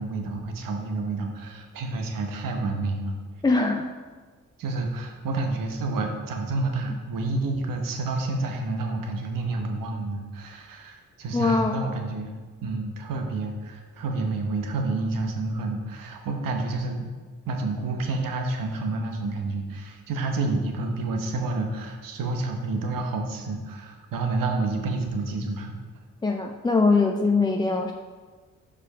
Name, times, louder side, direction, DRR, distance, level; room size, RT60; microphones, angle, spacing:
voice 1, 0.0-3.2 4.6-12.3 12.6-17.0 17.4-25.8, right 3 dB, 75° right, 3 dB, 1.0 m, -29 dB
voice 2, 3.4-3.9 11.3-11.9 26.2-27.9, left 3 dB, 15° left, 3 dB, 0.4 m, -22 dB
4.9 x 4.9 x 4.8 m, 1.4 s
supercardioid pair, 60°, 33 cm